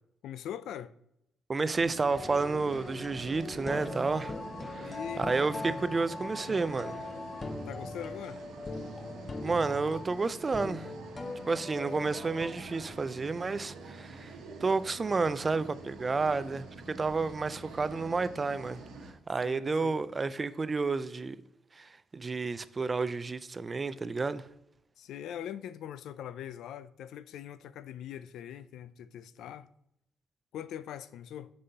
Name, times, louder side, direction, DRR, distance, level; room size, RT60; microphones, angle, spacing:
voice 1, 0.2-0.9 4.8-5.3 7.7-8.4 19.4-20.0 25.0-29.7 30.5-31.5, left 10 dB, 80° left, 0.3 m, -42 dB
voice 2, 1.5-4.3 4.7-7.0 9.4-10.9 11.5-14.3 14.6-18.8 19.3-21.4 21.8-24.4, right 4 dB, 30° right, 0.3 m, -31 dB
sound 1, 1.7-19.1, right 3 dB, 85° right, 1.1 m, -46 dB
sound 2, 2.1-12.5, left 2 dB, 25° left, 0.5 m, -40 dB
6.5 x 5.4 x 2.8 m
cardioid pair, 90°, 0 cm